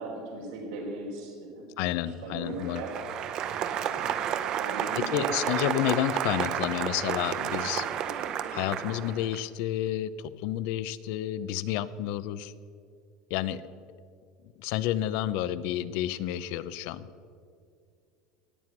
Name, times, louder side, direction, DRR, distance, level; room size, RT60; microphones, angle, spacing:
voice 1, 0.0-1.7 2.0-2.9 3.8-5.6 15.4-15.9, right 3 dB, 80° right, -3 dB, 3.1 m, -39 dB
voice 2, 1.8-2.8 5.0-7.9 8.5-12.5 13.3-13.6 14.6-17.1, left 12 dB, 60° left, 16 dB, 0.5 m, -30 dB
Applause, 2.5-9.4, right 9 dB, 35° right, 0.6 m, -31 dB
17.0 x 9.5 x 6.0 m, 2.3 s
cardioid pair, 175°, 2 cm